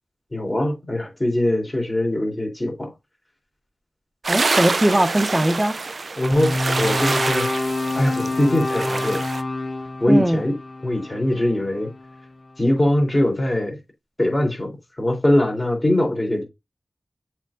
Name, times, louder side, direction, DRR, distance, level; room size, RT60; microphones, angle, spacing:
voice 1, 0.3-2.9 6.2-7.5 7.9-9.2 10.0-10.5 10.8-11.9 12.6-13.8 14.2-14.7 15.0-16.4, left 1 dB, 25° left, 3.9 m, -21 dB
sound 1, 4.2-9.4, right 3 dB, 65° right, 0.5 m, -26 dB
voice 2, 4.3-5.8 10.1-10.4, right 1 dB, 20° right, 1.2 m, -20 dB
sound 2, 6.3-12.5, left 2 dB, 50° left, 1.1 m, -27 dB
7.3 x 3.7 x 4.1 m
wide cardioid pair, 75°, 0 cm